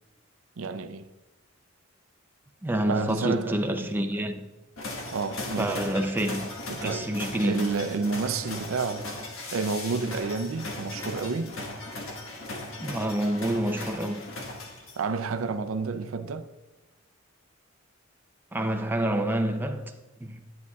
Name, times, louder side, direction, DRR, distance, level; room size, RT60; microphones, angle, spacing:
voice 1, 0.6-1.1 2.9-3.9 5.1-5.8 6.7-7.2 7.4-9.1 9.5-11.6 15.0-16.5, right 4 dB, 70° right, 0.5 m, -30 dB
voice 2, 2.6-4.4 5.6-6.4 6.8-7.7 12.8-14.3 18.5-19.9 20.2-20.4, right 1 dB, 10° right, 0.5 m, -27 dB
sound 1, 4.8-15.2, left 2 dB, 80° left, 1.5 m, -38 dB
11.0 x 9.3 x 2.4 m
head